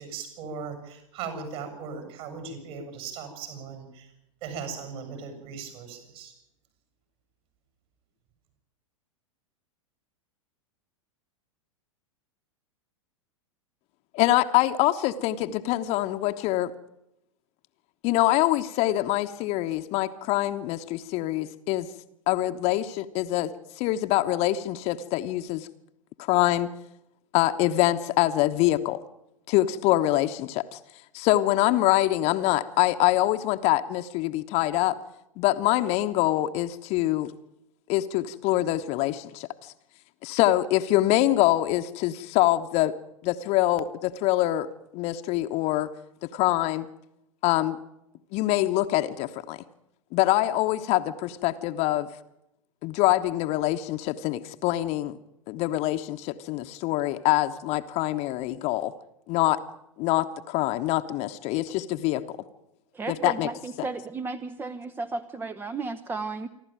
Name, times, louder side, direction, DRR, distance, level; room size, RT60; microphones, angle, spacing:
voice 1, 0.0-4.1 4.4-6.3, right 5 dB, 50° right, 7 dB, 7.6 m, -38 dB
voice 2, 14.1-16.7 18.0-21.9 22.3-23.5 23.8-25.7 26.3-26.7 27.3-29.0 29.5-30.8 31.1-35.0 35.4-37.3 37.9-39.5 40.2-42.9 43.2-45.9 46.2-46.9 47.4-47.8 48.3-49.6 50.1-52.1 52.8-55.2 55.5-58.9 59.3-59.6 60.0-62.4 63.1-63.5 63.8-63.9, left 15 dB, 40° left, 8 dB, 1.0 m, -24 dB
voice 3, 62.9-66.5, right 3 dB, 10° right, 12 dB, 0.8 m, -34 dB
27.0 x 12.5 x 9.0 m, 0.84 s
figure-of-eight pair, 95°, 17 cm